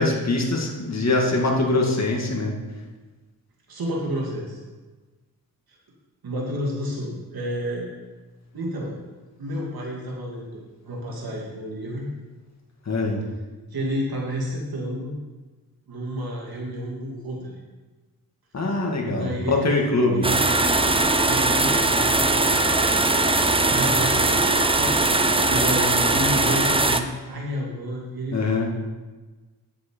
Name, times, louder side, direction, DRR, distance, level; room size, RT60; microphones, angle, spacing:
voice 1, 0.0-2.5 12.9-13.2 18.5-20.3 28.3-28.7, left 2 dB, 45° left, 0 dB, 2.0 m, -23 dB
voice 2, 3.7-4.6 5.7-5.8 6.2-7.9 8.5-8.9 9.4-12.1 13.7-15.2 15.9-17.6 19.0-19.7 20.1-20.7 21.2-24.9 25.5-28.4, equal, 70° right, -3 dB, 2.2 m, -30 dB
sound 1, 20.2-27.0, right 2 dB, 15° right, 0.6 m, -20 dB
9.4 x 7.8 x 4.5 m, 1.2 s
cardioid pair, 70°, 37 cm